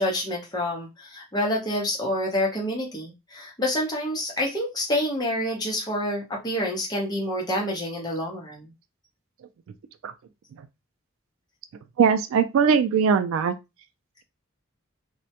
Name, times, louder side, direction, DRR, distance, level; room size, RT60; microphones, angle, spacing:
voice 1, 0.0-8.7, left 1 dB, 20° left, 0.7 m, -27 dB
voice 2, 12.0-13.5, right 6 dB, 75° right, 0.3 m, -20 dB
2.2 x 2.1 x 2.8 m
head